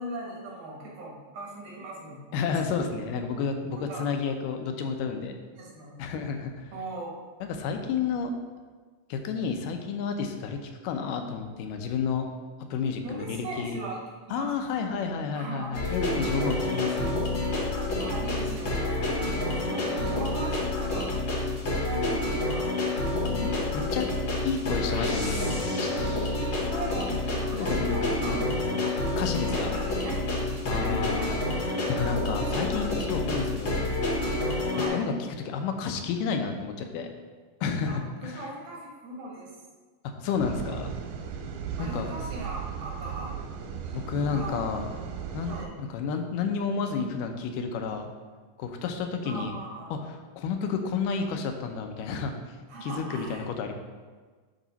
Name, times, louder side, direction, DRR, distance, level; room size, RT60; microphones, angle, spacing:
voice 1, 0.0-2.7 3.9-4.1 5.5-5.9 6.7-7.3 13.0-14.0 14.3-14.5 15.3-15.8 16.6-16.7 17.0-17.1 17.9-21.1 21.7-22.7 26.6-28.4 29.3-31.7 32.3-32.7 34.7-35.0 37.9-38.0 38.2-39.5 41.8-43.4 43.8-44.0 44.3-44.6 45.5-45.7 49.2-49.9 52.7-53.4, right 2 dB, 70° right, -4 dB, 3.0 m, -39 dB
voice 2, 2.3-5.3 6.0-6.5 7.4-8.3 9.1-12.3 12.7-13.8 14.3-17.2 19.3-19.4 19.7-19.8 23.2-24.1 24.4-26.1 27.5-28.0 28.2-29.8 30.7-33.9 34.8-35.1 35.5-37.1 37.6-38.4 40.2-40.9 41.8-42.1 43.9-44.9 45.3-48.1 48.6-49.6 49.9-52.3 52.8-53.7, left 5 dB, 85° left, 5 dB, 2.3 m, -31 dB
sound 1, 15.7-34.9, left 2 dB, 45° left, 1.6 m, -28 dB
sound 2, 40.4-45.7, right 7 dB, 90° right, 2.3 m, -36 dB
10.5 x 3.6 x 4.0 m, 1.4 s
omnidirectional pair, 3.8 m